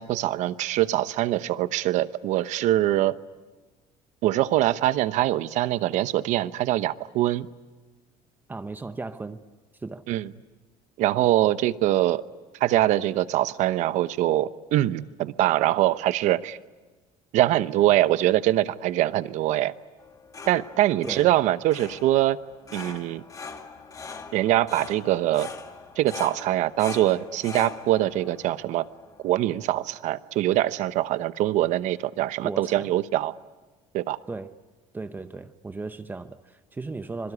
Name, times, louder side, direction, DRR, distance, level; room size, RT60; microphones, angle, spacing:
voice 1, 0.0-3.2 4.2-7.5 10.1-10.3 11.0-12.2 12.6-16.6 17.3-19.7 20.5-22.4 22.7-23.2 24.3-25.5 26.0-28.9 29.2-33.3 33.9-34.2, right 14 dB, 65° right, 0.9 m, -23 dB
voice 2, 8.5-9.4 9.8-10.1 21.0-21.3 32.4-32.9 34.3-34.5 34.9-37.3, right 3 dB, 15° right, 0.8 m, -36 dB
sound 1, 20.0-29.7, left 4 dB, 25° left, 2.0 m, -42 dB
26.0 x 22.5 x 9.7 m
cardioid pair, 140°, 13 cm